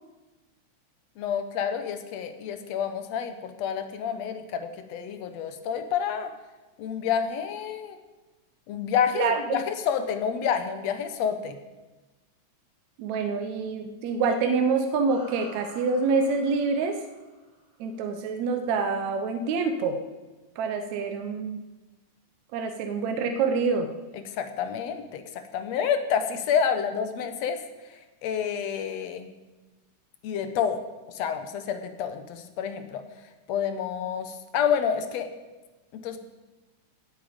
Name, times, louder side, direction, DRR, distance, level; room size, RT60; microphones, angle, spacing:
voice 1, 1.2-6.3 6.8-8.0 8.7-11.6 24.3-25.2 25.5-27.6 28.2-29.3 30.2-30.8 31.1-33.0 33.5-35.3 35.9-36.2, left 7 dB, 70° left, 8 dB, 2.0 m, -28 dB
voice 2, 9.1-9.6 13.0-17.0 17.8-20.0 20.6-21.6 22.5-23.9, right 4 dB, 75° right, 6 dB, 2.0 m, -26 dB
sound 1, 15.1-17.8, equal, 15° right, 1.5 m, -49 dB
18.0 x 7.6 x 5.1 m, 1.2 s
omnidirectional pair, 3.5 m